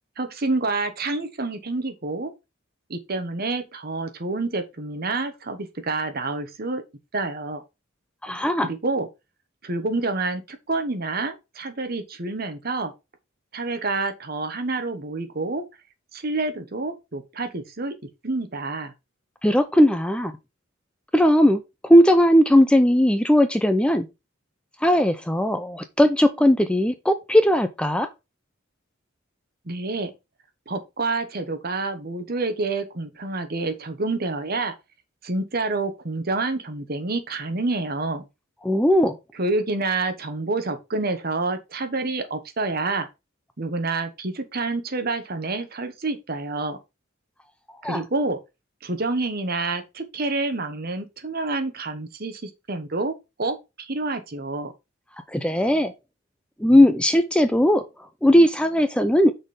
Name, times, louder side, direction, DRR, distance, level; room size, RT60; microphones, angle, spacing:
voice 1, 0.2-2.3 2.9-6.8 7.1-7.6 8.6-9.1 9.6-12.9 13.5-15.6 16.1-17.9 18.2-18.9 29.6-30.1 30.7-34.7 35.2-38.3 39.4-43.1 43.6-46.8 47.8-48.4 48.8-54.7, right 3 dB, 50° right, 1.2 m, -28 dB
voice 2, 8.2-8.7 19.4-20.3 21.1-24.1 24.8-28.1 38.6-39.2 47.8-48.0 55.3-55.9 56.6-57.8 58.2-59.3, equal, 5° left, 0.5 m, -18 dB
6.1 x 4.4 x 4.8 m
head